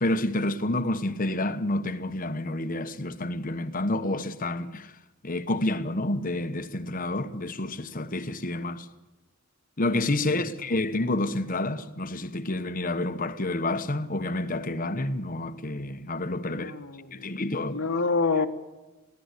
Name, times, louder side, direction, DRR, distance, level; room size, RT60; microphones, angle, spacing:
voice 1, 0.0-4.9 5.2-8.9 9.8-16.7 17.1-17.9, left 2 dB, 40° left, 1.1 m, -29 dB
voice 2, 16.5-17.3 17.7-18.5, left 4 dB, 75° left, 1.4 m, -27 dB
22.0 x 16.0 x 8.3 m
head